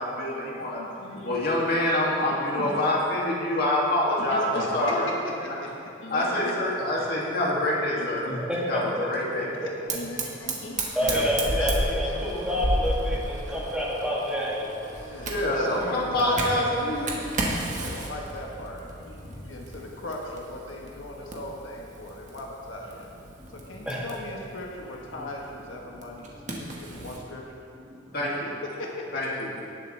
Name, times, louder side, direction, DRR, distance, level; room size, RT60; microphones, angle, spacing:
voice 1, 0.0-0.8 1.2-5.0 5.4-5.5 6.1-8.2 8.7-9.5 15.1-17.1 28.1-28.5 29.1-29.5, left 1 dB, 55° left, -5 dB, 2.3 m, -26 dB
voice 2, 0.8-1.4 2.5-2.9 4.2-6.7 7.0-7.1 7.9-8.4 9.6-11.3 11.5-12.2 13.4-13.6 14.9-17.2 17.8-23.1 23.5-27.4 27.9-28.0 28.6-29.2, left 1 dB, 75° left, -1 dB, 1.3 m, -38 dB
voice 3, 8.3-9.1 9.6-9.7 10.9-14.5 23.8-24.0 25.9-26.0 26.9-27.0 28.1-28.2, equal, 5° right, -8 dB, 2.3 m, -28 dB
Fire, 9.9-27.2, right 2 dB, 40° right, 1.4 m, -34 dB
18.5 x 7.2 x 3.3 m, 2.6 s
head